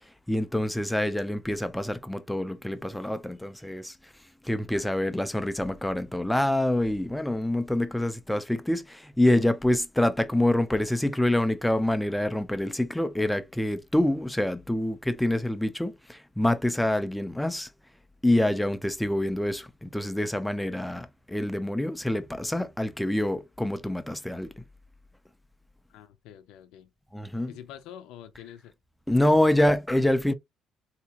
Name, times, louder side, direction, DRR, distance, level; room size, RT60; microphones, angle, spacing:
voice 1, 0.3-4.0 4.4-17.7 18.2-24.6 27.1-27.6 29.1-30.3, left 1 dB, 5° left, 0.5 m, -26 dB
voice 2, 4.6-5.3 25.9-26.9 27.5-28.7 29.3-29.6, left 10 dB, 85° left, 0.5 m, -47 dB
3.3 x 2.9 x 2.8 m
cardioid pair, 100°, 0 cm